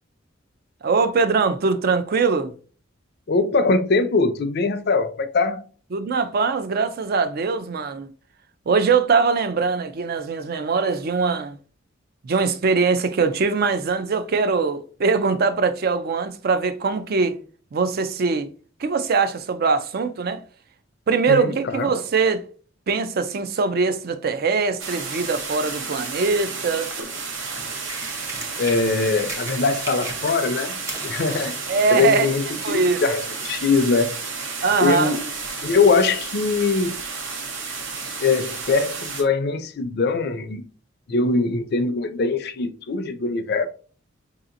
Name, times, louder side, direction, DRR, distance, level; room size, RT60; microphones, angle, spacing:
voice 1, 0.8-2.5 5.9-8.1 8.7-11.5 12.2-17.3 17.7-18.5 18.8-20.4 21.1-22.4 22.9-26.9 31.7-32.3 32.6-33.0 34.6-35.1, right 4 dB, 50° right, 0.4 m, -22 dB
voice 2, 3.3-5.6 21.3-21.9 28.6-31.5 31.9-34.2 34.8-35.3 35.6-37.0 38.2-40.6 41.1-43.7, left 4 dB, 55° left, 0.5 m, -22 dB
sound 1, 24.8-39.2, right 4 dB, 70° right, 0.9 m, -32 dB
sound 2, 27.0-30.6 30.8-32.8 33.7-33.8, right 2 dB, 15° right, 0.7 m, -38 dB
4.8 x 2.8 x 2.5 m
head